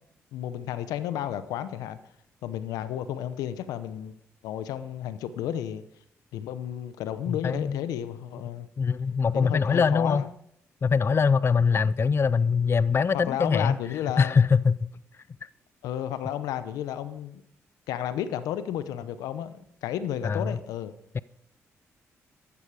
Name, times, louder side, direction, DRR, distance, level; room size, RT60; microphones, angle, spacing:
voice 1, 0.3-2.0 2.4-4.1 4.4-5.8 6.3-8.7 9.3-10.3 13.1-14.4 15.8-17.4 17.9-20.9, left 10 dB, 85° left, 0.9 m, -32 dB
voice 2, 7.3-7.8 8.8-10.2 10.8-13.7 14.2-14.9 20.2-20.6 21.1-21.2, left 5 dB, 40° left, 0.4 m, -23 dB
13.5 x 12.0 x 4.9 m
supercardioid pair, 50°, 6 cm